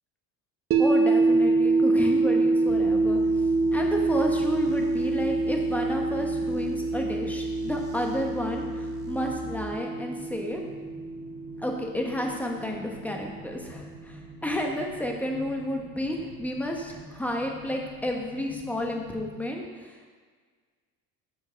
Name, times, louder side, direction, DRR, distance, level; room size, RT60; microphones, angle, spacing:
sound 1, 0.7-12.8, right 3 dB, 35° right, 0.8 m, -26 dB
voice 1, 0.8-3.2 3.7-10.6 11.6-20.1, left 1 dB, 5° left, 1 dB, 1.1 m, -31 dB
sound 2, 1.2-19.4, right 1 dB, 80° right, 1.9 m, -48 dB
sound 3, 2.7-9.6, left 10 dB, 65° right, 1.0 m, -42 dB
7.1 x 5.8 x 5.0 m, 1.5 s
cardioid pair, 115°, 38 cm